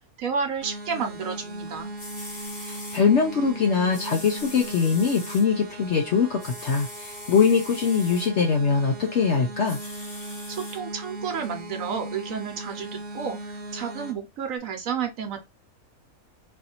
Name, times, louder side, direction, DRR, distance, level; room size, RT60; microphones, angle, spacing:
voice 1, 0.2-1.9 10.5-15.4, right 6 dB, 70° right, 1.1 m, -31 dB
sound 1, 0.6-14.1, right 1 dB, 45° right, 0.8 m, -39 dB
sound 2, 1.7-1.8 2.0-3.0 3.9-5.4 6.4-8.3 9.6-10.8 11.4-11.5, left 1 dB, 40° left, 1.7 m, -41 dB
voice 2, 2.7-9.8, left 5 dB, 60° left, 0.8 m, -22 dB
4.0 x 2.6 x 2.8 m
omnidirectional pair, 1.5 m